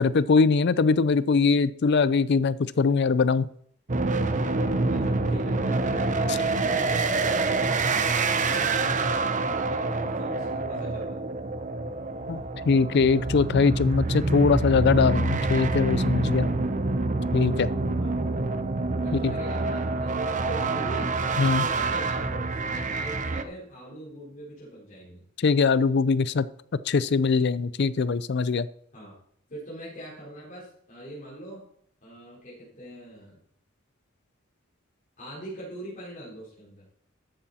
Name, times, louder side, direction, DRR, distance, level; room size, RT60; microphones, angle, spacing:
voice 1, 0.0-3.5 12.3-16.5 17.3-17.7 19.2-19.3 21.4-21.7 25.4-26.5 26.9-28.7, left 4 dB, 55° left, 17 dB, 0.5 m, -22 dB
sound 1, 3.9-23.4, right 3 dB, 40° right, 0.8 m, -26 dB
voice 2, 4.9-9.2 9.4-11.2 18.0-18.1 19.0-21.1 21.4-25.2 28.9-29.1 29.5-31.6 32.0-33.4 35.2-36.9, right 1 dB, 40° left, -8 dB, 4.4 m, -42 dB
13.0 x 8.8 x 4.2 m, 0.66 s
head